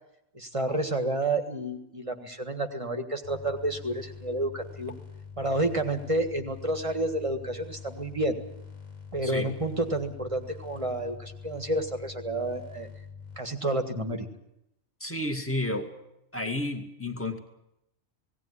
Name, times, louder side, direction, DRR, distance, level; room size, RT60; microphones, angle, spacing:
voice 1, 0.3-4.9 5.4-8.4 9.1-12.9 13.4-14.3, right 1 dB, 25° right, 6 dB, 1.7 m, -30 dB
sound 1, 3.2-13.4, left 6 dB, 80° left, 2.7 m, -45 dB
voice 2, 9.2-9.5 15.0-15.9 16.3-17.4, left 1 dB, 10° left, 4 dB, 2.0 m, -31 dB
18.0 x 17.5 x 9.9 m, 0.85 s
omnidirectional pair, 1.4 m